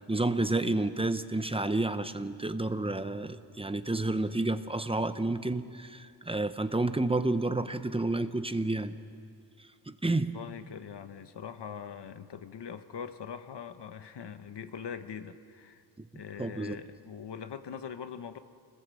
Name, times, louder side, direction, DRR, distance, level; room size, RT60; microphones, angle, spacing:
voice 1, 0.1-8.9 9.9-10.4 16.0-16.1 16.4-16.8, right 2 dB, 15° right, 10 dB, 0.7 m, -30 dB
voice 2, 10.3-15.8 16.1-18.4, left 7 dB, 80° left, 10 dB, 1.1 m, -42 dB
26.0 x 19.5 x 7.6 m, 2.3 s
wide cardioid pair, 145°, 40 cm